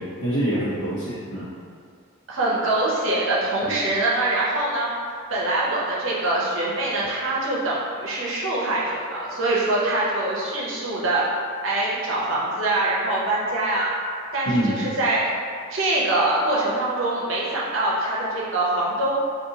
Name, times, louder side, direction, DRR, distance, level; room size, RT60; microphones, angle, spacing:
voice 1, 0.0-1.5 3.6-3.8 14.5-14.8, right 1 dB, 80° left, -14 dB, 0.8 m, -25 dB
voice 2, 2.3-4.9 5.3-11.2 11.6-13.9 14.3-15.3 15.7-19.2, right 2 dB, 65° right, -6 dB, 0.6 m, -24 dB
2.8 x 2.5 x 2.7 m, 2.2 s
head